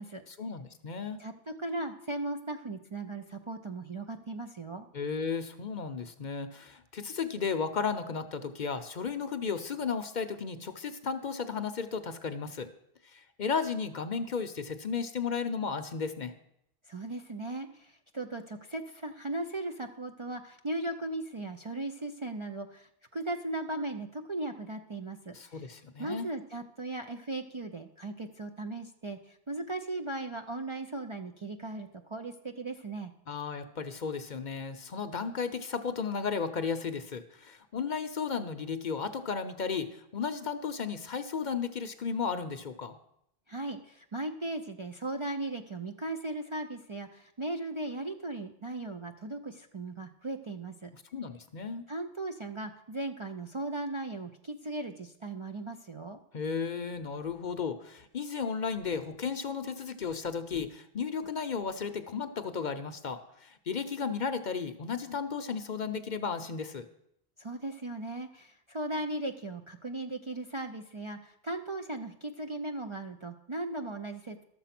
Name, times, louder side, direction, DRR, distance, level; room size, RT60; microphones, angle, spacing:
voice 1, 0.3-1.2 4.9-12.7 13.0-16.3 25.3-26.3 33.3-43.0 50.9-51.8 56.3-66.9, left 5 dB, 50° left, 9 dB, 0.7 m, -34 dB
voice 2, 1.2-4.9 16.9-25.7 26.0-33.1 43.5-50.9 51.9-56.2 67.4-74.4, right 2 dB, 40° right, 5 dB, 0.5 m, -37 dB
12.5 x 6.9 x 5.9 m, 0.76 s
omnidirectional pair, 1.1 m